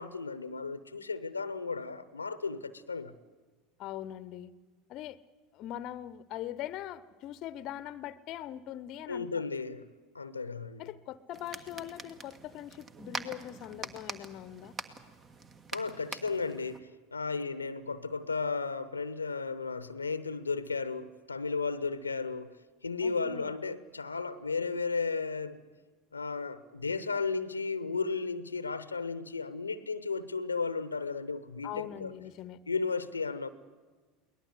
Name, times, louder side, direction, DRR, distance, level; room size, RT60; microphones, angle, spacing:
voice 1, 0.0-3.1 9.1-9.9 10.1-10.8 15.7-22.5 22.8-25.6 26.1-32.1 32.7-33.5, left 4 dB, 90° left, 0.8 m, -34 dB
voice 2, 3.8-4.5 4.9-5.2 5.5-9.4 10.8-14.7 23.0-23.5 31.6-32.6, left 12 dB, 50° left, 0.8 m, -41 dB
sound 1, 11.3-16.8, right 3 dB, 30° right, 1.5 m, -44 dB
23.0 x 19.0 x 8.1 m
figure-of-eight pair, 80°, 0 cm